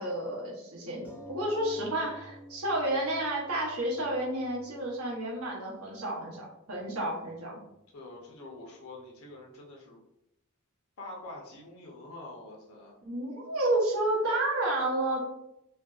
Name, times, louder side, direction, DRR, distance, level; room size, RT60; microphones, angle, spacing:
voice 1, 0.0-7.6 13.0-15.2, right 1 dB, 85° right, -3 dB, 0.8 m, -31 dB
sound 1, 1.0-6.0 6.8-6.9 7.2-7.3, equal, 10° right, 0.6 m, -50 dB
voice 2, 7.9-10.0 11.0-13.0, left 2 dB, 75° left, 0 dB, 0.5 m, -46 dB
2.5 x 2.1 x 2.3 m, 0.85 s
head